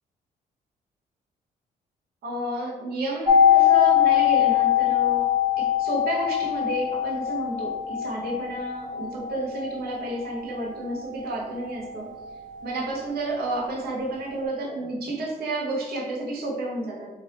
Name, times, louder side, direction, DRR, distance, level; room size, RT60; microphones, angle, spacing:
voice 1, 2.2-5.3 5.6-12.1 12.6-17.1, right 1 dB, 75° right, -2 dB, 0.9 m, -31 dB
sound 1, 3.3-13.0 13.3-13.4, left 10 dB, 25° right, 0.9 m, -23 dB
3.2 x 2.6 x 4.0 m, 1.2 s
cardioid pair, 80°, 16 cm